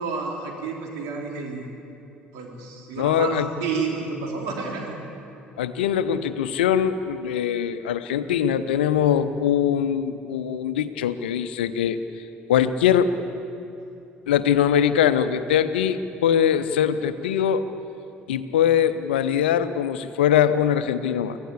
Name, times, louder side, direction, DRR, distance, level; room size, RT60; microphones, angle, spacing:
voice 1, 0.0-1.7 2.3-5.0, right 4 dB, 65° right, 1 dB, 3.7 m, -30 dB
voice 2, 3.0-3.5 5.6-12.0 12.5-13.1 14.3-17.7 18.3-21.4, left 9 dB, 80° left, 11 dB, 0.8 m, -22 dB
24.5 x 16.5 x 8.5 m, 2.8 s
figure-of-eight pair, 50°, 6 cm